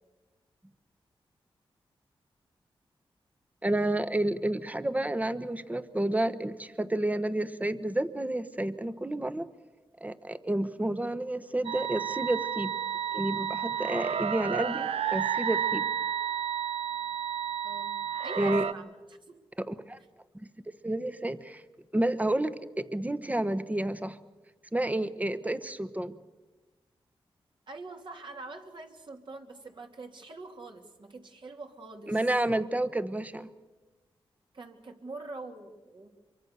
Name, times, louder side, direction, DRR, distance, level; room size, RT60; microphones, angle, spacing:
voice 1, 3.6-9.5 10.0-12.7 13.1-15.8 18.4-18.6 19.6-20.0 20.8-21.6 21.9-24.2 24.7-26.1 32.1-33.5, right 1 dB, 15° right, 12 dB, 1.1 m, -30 dB
sound 1, 11.6-18.7, right 8 dB, 85° right, 0.7 m, -31 dB
voice 2, 17.6-17.9 18.2-19.4 20.0-20.1 27.7-32.2 34.5-36.1, right 3 dB, 55° right, 2 dB, 2.8 m, -44 dB
24.5 x 23.5 x 6.8 m, 1.2 s
cardioid pair, 60°, 10 cm